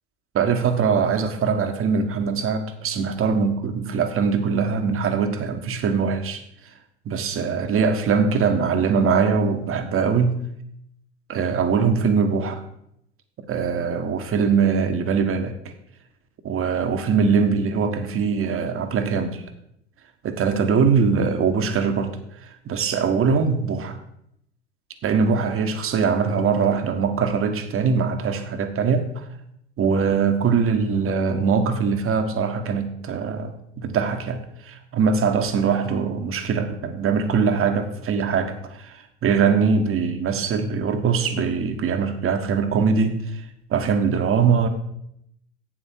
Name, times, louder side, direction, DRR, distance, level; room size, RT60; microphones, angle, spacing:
voice 1, 0.3-6.4 7.0-10.4 11.3-12.6 13.4-15.6 16.4-19.4 20.2-24.0 25.0-29.2 29.8-43.4 43.7-44.7, right 5 dB, 35° right, 7 dB, 1.5 m, -22 dB
11.5 x 8.7 x 4.6 m, 0.75 s
figure-of-eight pair, 70°, 36 cm